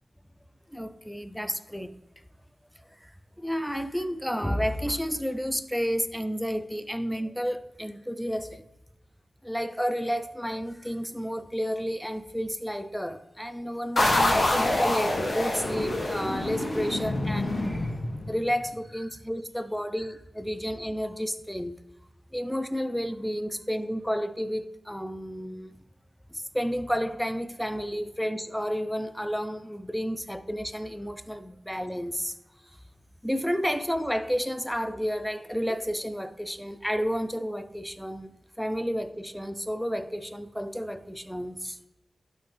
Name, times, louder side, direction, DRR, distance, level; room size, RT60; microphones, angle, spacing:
voice 1, 0.7-1.9 3.0-3.1 3.4-8.6 9.4-17.9 18.3-21.8 22.3-25.7 26.3-32.4 33.2-38.3 38.6-41.8, equal, 5° left, 0.7 m, -31 dB
sound 1, 14.0-18.5, left 1 dB, 60° left, 2.3 m, -26 dB
11.5 x 4.4 x 3.5 m
cardioid pair, 45°, 0 cm